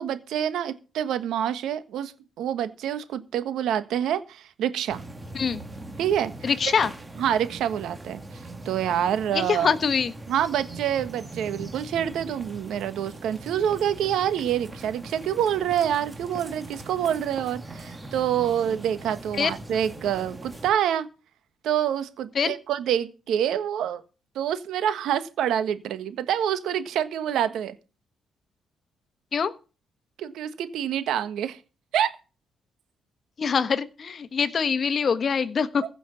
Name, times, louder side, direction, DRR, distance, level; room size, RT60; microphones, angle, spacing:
voice 1, 0.0-5.0 6.0-6.3 7.2-8.2 8.6-9.7 10.3-21.1 21.6-24.0 24.3-27.7 30.2-31.6 31.9-32.1, right 10 dB, 80° right, 1.4 m, -26 dB
sound 1, 4.9-20.7, right 2 dB, 15° right, 2.5 m, -41 dB
voice 2, 6.4-6.9 9.3-10.1 19.3-19.5 22.3-22.5 29.3-29.5 33.4-35.9, left 6 dB, 45° left, 1.2 m, -24 dB
15.5 x 6.3 x 7.1 m
cardioid pair, 90°, 0 cm